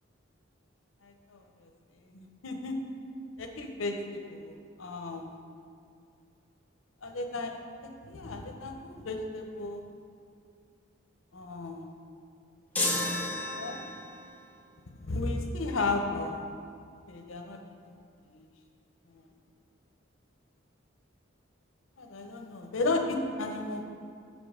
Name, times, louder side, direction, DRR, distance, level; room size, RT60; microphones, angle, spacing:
voice 1, 1.0-1.7 2.1-2.8 3.4-5.4 7.0-7.5 7.8-9.8 11.3-11.9 13.5-13.9 14.9-16.4 17.1-17.6 17.8-18.0 18.3-18.5 19.1-19.2 22.0-23.9, left 2 dB, 90° left, 4 dB, 0.8 m, -34 dB
sound 1, 12.7-14.2, left 2 dB, 10° left, 0.8 m, -31 dB
6.7 x 5.2 x 5.0 m, 2.3 s
head